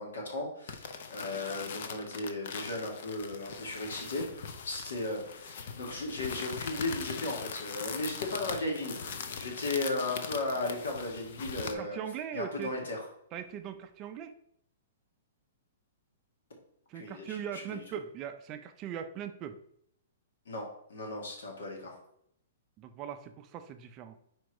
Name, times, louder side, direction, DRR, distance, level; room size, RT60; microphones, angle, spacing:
voice 1, 0.0-8.9 9.4-12.0 12.3-13.0 16.9-17.4 17.7-17.8 20.5-22.0, left 2 dB, 85° left, 0 dB, 2.4 m, -36 dB
sound 1, 0.7-11.7, left 6 dB, 45° left, 0.6 m, -41 dB
voice 2, 11.7-12.8 13.3-14.3 16.9-19.6 22.8-24.2, right 9 dB, 20° right, 8 dB, 0.4 m, -40 dB
5.1 x 4.4 x 4.7 m, 0.70 s
hypercardioid pair, 175°, 0 cm